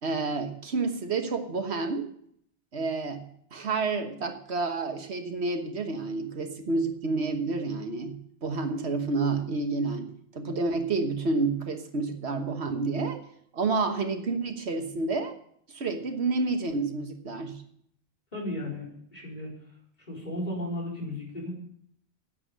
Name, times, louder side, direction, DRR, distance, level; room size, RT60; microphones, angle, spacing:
voice 1, 0.0-2.1 2.7-3.2 3.5-8.2 8.4-13.2 13.5-15.3 15.7-17.6, right 3 dB, 75° right, 6 dB, 1.5 m, -29 dB
voice 2, 18.3-19.6 20.1-21.5, left 1 dB, 45° left, -3 dB, 4.6 m, -35 dB
10.0 x 7.8 x 9.3 m, 0.69 s
omnidirectional pair, 1.1 m